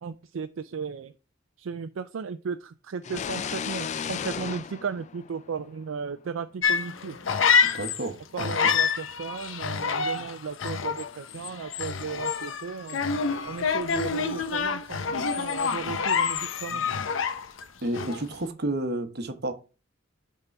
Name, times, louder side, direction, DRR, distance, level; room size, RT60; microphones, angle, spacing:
voice 1, 0.0-1.1 1.6-7.2 8.3-13.0 13.5-16.9, right 5 dB, 85° right, 0.4 m, -35 dB
sound 1, 3.0-5.8, left 7 dB, 40° left, 0.3 m, -34 dB
sound 2, 6.6-8.1 8.4-17.7 17.9-18.3, left 6 dB, 85° left, 0.7 m, -27 dB
voice 2, 7.6-8.7 10.2-10.3 17.8-19.5, right 1 dB, 55° right, 1.0 m, -31 dB
6.7 x 3.7 x 5.8 m
head